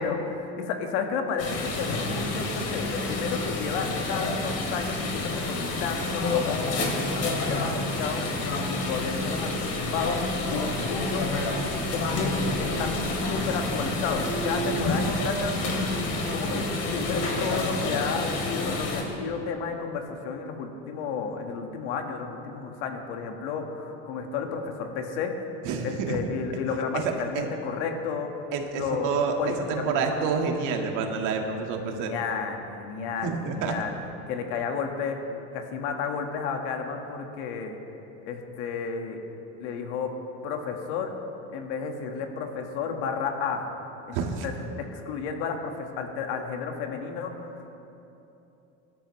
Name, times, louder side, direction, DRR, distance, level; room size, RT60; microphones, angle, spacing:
voice 1, 0.0-10.2 10.5-11.3 11.9-12.3 12.6-15.6 16.3-16.6 16.9-25.3 25.8-28.4 28.8-30.0 31.8-34.0 34.3-35.2 35.5-37.8 38.3-39.2 39.6-40.1 40.4-41.1 41.5-43.7 44.1-44.2 44.4-44.5 44.8-47.5, left 5 dB, 90° left, 3 dB, 1.8 m, -32 dB
sound 1, 1.4-19.0, left 2 dB, 45° left, 2.9 m, -28 dB
voice 2, 25.6-26.2 27.0-27.5 28.5-29.3 29.7-32.1 33.2-33.7 44.1-44.4, right 5 dB, 65° right, 2 dB, 2.0 m, -28 dB
23.5 x 12.5 x 3.3 m, 2.9 s
cardioid pair, 135°, 33 cm